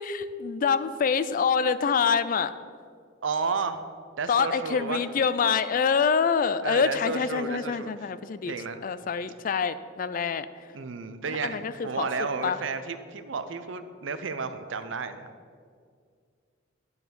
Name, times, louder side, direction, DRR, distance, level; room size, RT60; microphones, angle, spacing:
voice 1, 0.0-2.5 4.3-8.5 8.8-10.5 11.3-12.1 12.4-12.6, left 6 dB, 45° left, 14 dB, 0.3 m, -26 dB
voice 2, 3.2-3.8 4.2-5.0 6.6-7.9 8.5-8.8 10.7-15.3, right 4 dB, 75° right, 10 dB, 0.6 m, -32 dB
11.5 x 4.1 x 6.9 m, 2.1 s
head